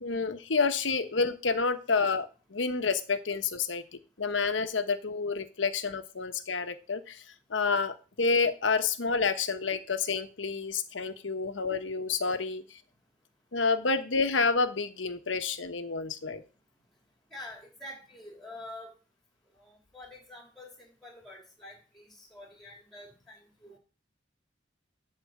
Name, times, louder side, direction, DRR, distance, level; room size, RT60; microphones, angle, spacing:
voice 1, 0.0-3.8 4.2-7.2 7.5-12.6 13.5-16.4, left 4 dB, 85° left, 10 dB, 1.1 m, -29 dB
voice 2, 17.3-18.9 19.5-23.8, left 1 dB, ahead, 1 dB, 3.0 m, -47 dB
11.5 x 4.3 x 7.6 m, 0.35 s
head